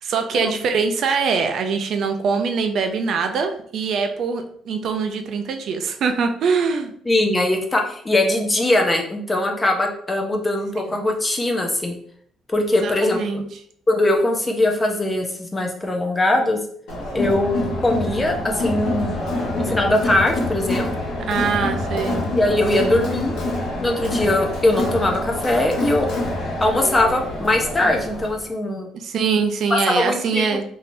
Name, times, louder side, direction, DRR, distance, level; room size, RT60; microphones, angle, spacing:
voice 1, 0.0-6.9 12.8-13.4 21.3-22.3 22.7-23.0 28.9-30.6, right 5 dB, 55° right, 6 dB, 0.4 m, -23 dB
voice 2, 7.1-11.9 12.5-13.4 13.9-16.6 17.1-19.1 19.6-20.9 22.3-23.4 23.8-26.1 26.6-28.9 29.9-30.6, left 1 dB, 15° left, 2 dB, 0.5 m, -21 dB
Crowd, 16.9-28.4, left 2 dB, 75° left, 1.1 m, -26 dB
3.2 x 2.7 x 2.6 m, 0.63 s
cardioid pair, 150°, 0 cm